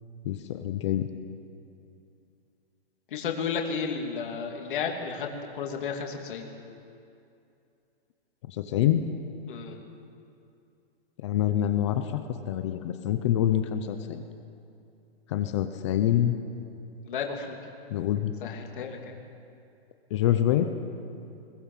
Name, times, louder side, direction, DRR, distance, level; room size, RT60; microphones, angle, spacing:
voice 1, 0.2-1.1 8.5-9.0 11.2-12.2 12.5-14.2 15.3-16.4 17.9-18.3 20.1-20.7, left 11 dB, 30° left, 8 dB, 0.9 m, -26 dB
voice 2, 3.1-6.5 9.5-9.8 17.0-17.6 18.4-19.2, left 6 dB, 55° left, 2 dB, 2.9 m, -33 dB
21.5 x 20.0 x 7.5 m, 2.6 s
hypercardioid pair, 170°, 31 cm